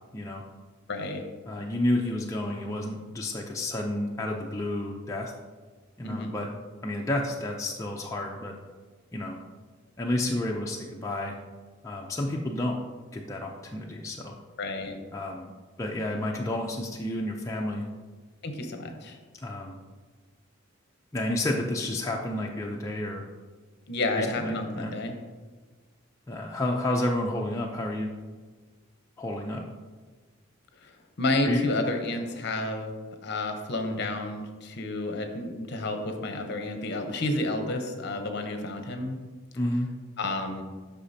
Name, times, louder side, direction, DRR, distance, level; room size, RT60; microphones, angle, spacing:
voice 1, 0.1-0.4 1.5-5.3 6.0-6.5 6.8-8.5 9.1-9.4 10.0-11.3 11.8-12.8 13.1-14.3 15.1-15.5 15.8-17.8 19.4-19.8 21.1-23.2 24.2-24.9 26.3-28.1 29.2-29.6 31.4-31.6 39.6-39.9, left 1 dB, 15° left, -1 dB, 0.4 m, -30 dB
voice 2, 0.9-1.2 6.0-6.3 14.6-14.9 18.4-19.2 23.9-25.1 30.8-30.9 31.2-32.9 33.2-39.2 40.2-40.6, left 2 dB, 55° left, 5 dB, 0.8 m, -30 dB
8.2 x 5.7 x 2.7 m, 1.4 s
head